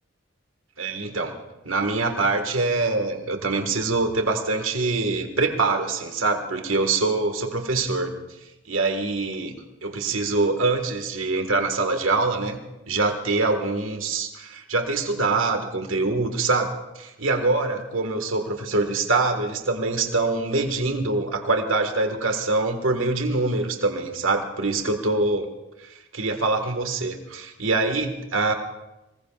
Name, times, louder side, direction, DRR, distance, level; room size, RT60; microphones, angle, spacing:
voice 1, 0.8-1.4 1.7-8.2 8.7-12.6 12.9-25.5 25.8-28.5, right 3 dB, 80° right, 5 dB, 1.8 m, -24 dB
25.0 x 21.0 x 2.5 m, 0.98 s
head